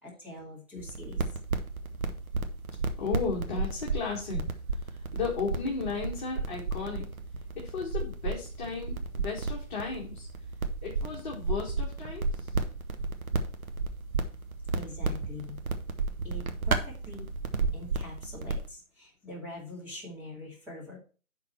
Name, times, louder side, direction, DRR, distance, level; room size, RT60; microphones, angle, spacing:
voice 1, 0.0-1.4 14.7-15.6 16.2-17.3 17.7-21.0, left 2 dB, 5° right, -8 dB, 2.3 m, -44 dB
sound 1, 0.8-18.7, right 3 dB, 80° right, 1.3 m, -33 dB
voice 2, 3.0-4.5 4.9-7.1 7.6-10.3 10.8-12.5, left 5 dB, 35° left, -3 dB, 1.9 m, -35 dB
10.5 x 4.0 x 4.4 m, 0.37 s
hypercardioid pair, 150°, 42 cm